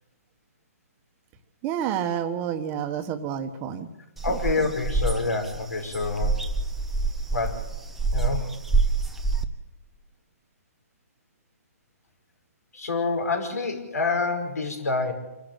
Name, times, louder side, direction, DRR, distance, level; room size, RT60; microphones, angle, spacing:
voice 1, 1.6-3.9 4.3-4.4, right 9 dB, 20° right, 7 dB, 1.3 m, -29 dB
voice 2, 4.2-6.4 7.3-7.7 8.1-8.5 12.7-15.1, left 3 dB, 80° left, 4 dB, 5.6 m, -27 dB
sound 1, 4.2-9.4, right 4 dB, ahead, 0.9 m, -26 dB
26.0 x 12.0 x 9.0 m, 0.98 s
hypercardioid pair, 155°, 9 cm